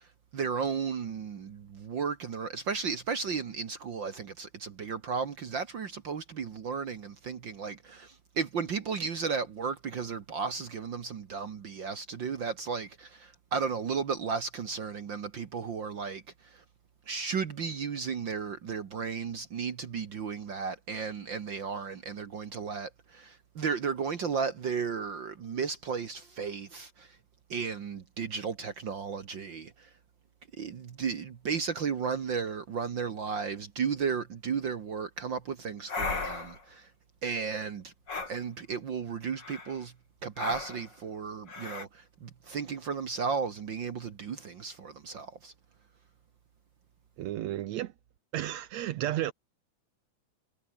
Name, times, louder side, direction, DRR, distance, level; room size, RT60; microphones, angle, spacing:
voice 1, 0.3-16.6 17.1-27.2 27.5-29.9 30.6-36.9 37.2-37.9 38.3-39.9 40.2-45.5, right 5 dB, 50° right, 1.7 m, -34 dB
sound 1, 35.9-36.6 38.1-38.4 39.4-39.8 40.4-40.9 41.5-41.9, left 4 dB, 35° left, 4.3 m, -35 dB
voice 2, 47.2-47.9 48.3-49.3, right 13 dB, 70° right, 1.9 m, -32 dB
omnidirectional pair, 3.5 m